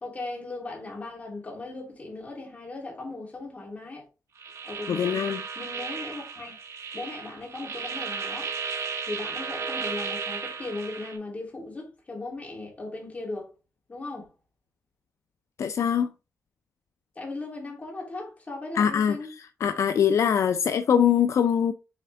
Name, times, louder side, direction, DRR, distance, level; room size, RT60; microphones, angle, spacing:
voice 1, 0.0-4.0 4.6-5.2 5.5-6.6 6.9-8.5 9.0-13.5 13.9-14.3 17.1-19.3, left 2 dB, 25° left, 2.9 m, -37 dB
sound 1, 4.4-11.2, right 5 dB, 65° right, 1.2 m, -34 dB
voice 2, 4.9-5.4 15.6-16.1 18.8-19.2 19.6-21.7, left 8 dB, 65° left, 0.4 m, -22 dB
7.1 x 4.3 x 3.4 m
wide cardioid pair, 140°, 5 cm